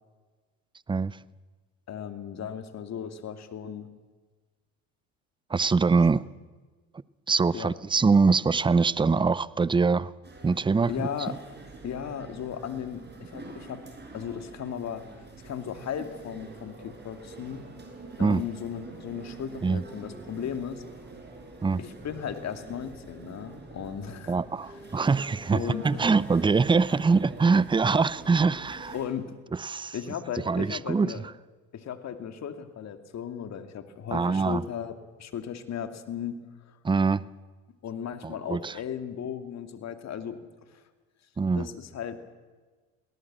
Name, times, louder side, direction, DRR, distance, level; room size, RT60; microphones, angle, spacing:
voice 1, 1.9-3.9 7.5-7.7 10.9-11.3 11.8-13.8 14.1-15.1 15.4-17.7 18.2-20.8 21.8-24.4 25.5-26.1 28.9-29.3 29.9-31.2 31.7-36.4 36.7-36.8 37.8-40.4 40.7-40.8 41.5-42.2, left 8 dB, 50° left, 9 dB, 2.3 m, -36 dB
voice 2, 5.5-6.2 7.3-10.1 10.4-11.4 18.2-18.4 19.6-19.8 21.6-21.8 24.3-28.9 29.5-29.9 30.5-31.2 34.1-34.6 36.8-37.2 38.2-38.8 41.4-41.7, right 4 dB, 15° right, 20 dB, 0.6 m, -24 dB
sound 1, 10.2-29.1, right 3 dB, 30° right, 5.8 m, -46 dB
21.5 x 18.0 x 7.6 m, 1.3 s
hypercardioid pair, 70°, 35 cm